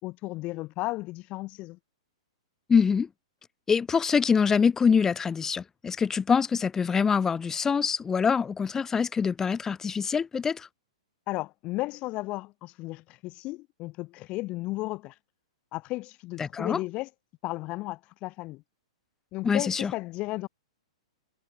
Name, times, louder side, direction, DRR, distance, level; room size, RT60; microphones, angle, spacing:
voice 1, 0.0-1.8 11.3-15.2 15.7-17.1 17.4-18.6 19.3-20.5, left 20 dB, 35° left, 2.1 m, -34 dB
voice 2, 2.7-3.1 3.7-10.7 16.4-16.8 19.4-19.9, left 6 dB, 15° left, 0.4 m, -24 dB
hypercardioid pair, 115°, 3 cm